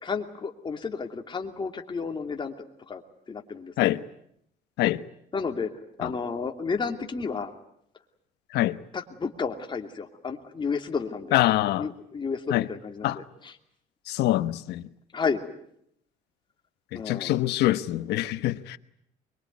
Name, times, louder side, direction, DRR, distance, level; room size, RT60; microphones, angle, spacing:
voice 1, 0.0-3.0 3.3-3.9 5.3-5.7 6.0-7.5 8.9-11.4 11.8-13.6 15.1-15.4 16.9-17.4, left 5 dB, 30° left, 2.7 m, -32 dB
voice 2, 11.3-11.9 12.5-12.7 13.0-13.2 14.1-14.9 16.9-18.8, left 15 dB, 80° left, 1.2 m, -24 dB
24.0 x 22.5 x 9.4 m
cardioid pair, 110°, 17 cm